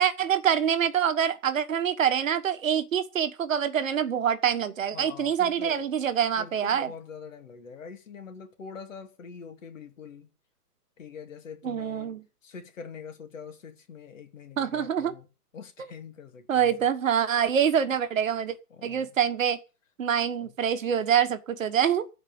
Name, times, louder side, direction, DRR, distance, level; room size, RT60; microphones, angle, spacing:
voice 1, 0.0-6.9 11.6-12.2 14.6-15.1 16.5-18.5 18.8-19.6 20.0-22.1, right 8 dB, 55° right, 1.3 m, -25 dB
voice 2, 4.9-5.9 6.4-10.3 11.0-12.1 12.4-15.3 15.5-16.9 18.7-19.1 20.4-20.5, left 6 dB, 50° left, 2.5 m, -44 dB
14.5 x 4.9 x 7.8 m
hypercardioid pair, 170°, 47 cm